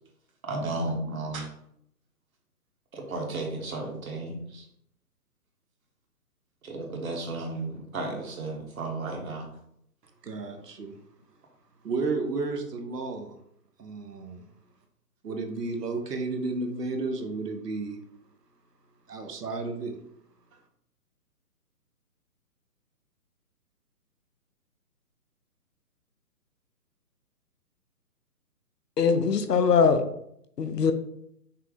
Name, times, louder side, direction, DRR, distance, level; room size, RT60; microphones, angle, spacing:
voice 1, 0.4-1.5 2.9-4.6 6.6-9.5, right 2 dB, 60° right, 1.4 m, -33 dB
voice 2, 10.2-10.9 11.8-13.4 13.8-14.5 15.2-18.0 19.1-20.0, right 3 dB, 80° right, 1.0 m, -32 dB
voice 3, 29.0-30.0 30.6-30.9, left 5 dB, 90° left, 0.7 m, -21 dB
5.7 x 2.2 x 3.6 m
hypercardioid pair, 145°, 47 cm